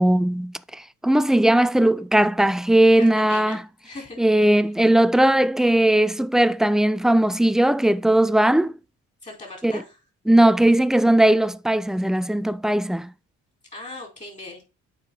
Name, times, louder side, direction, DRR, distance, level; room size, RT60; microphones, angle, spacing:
voice 1, 0.0-3.6 4.2-8.7 9.6-9.8 10.3-13.1, right 1 dB, ahead, 0.3 m, -18 dB
voice 2, 3.0-3.6 3.8-4.6 9.2-10.0 13.7-14.6, left 2 dB, 25° left, 4.7 m, -39 dB
8.1 x 5.0 x 4.8 m
cardioid pair, 90°, 30 cm